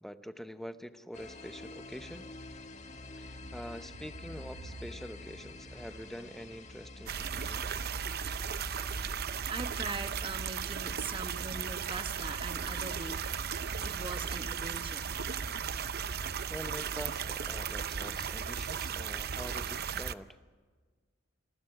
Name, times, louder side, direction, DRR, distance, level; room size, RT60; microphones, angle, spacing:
voice 1, 0.0-2.3 3.2-7.9 8.6-8.7 15.9-16.2 16.5-20.4, equal, ahead, 10 dB, 0.8 m, -45 dB
sound 1, 1.1-16.6, left 2 dB, 35° left, 1.5 m, -50 dB
Thunder, 3.2-5.5 5.8-10.6 11.7-14.3, right 1 dB, 80° right, 1.5 m, -55 dB
sound 2, 7.1-20.1, right 7 dB, 50° right, 0.6 m, -36 dB
voice 2, 9.5-13.2 13.8-15.2, right 3 dB, 25° right, 8 dB, 1.1 m, -41 dB
27.5 x 20.5 x 6.0 m, 1.5 s
head